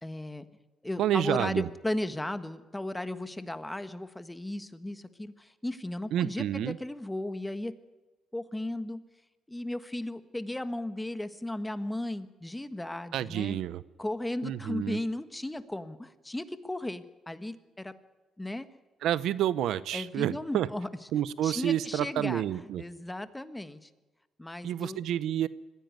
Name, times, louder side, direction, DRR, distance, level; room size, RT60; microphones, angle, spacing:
voice 1, 0.0-0.5 0.8-7.7 8.3-9.0 9.5-13.6 14.0-17.9 18.4-18.7 19.9-23.9 24.4-25.0, left 1 dB, 10° left, 11 dB, 1.5 m, -36 dB
voice 2, 1.0-1.7 6.1-6.8 13.1-13.8 14.4-15.0 19.0-20.7 21.1-22.8 24.6-25.5, right 11 dB, 80° right, 17 dB, 0.7 m, -29 dB
21.5 x 15.5 x 9.4 m, 1.2 s
cardioid pair, 90°, 0 cm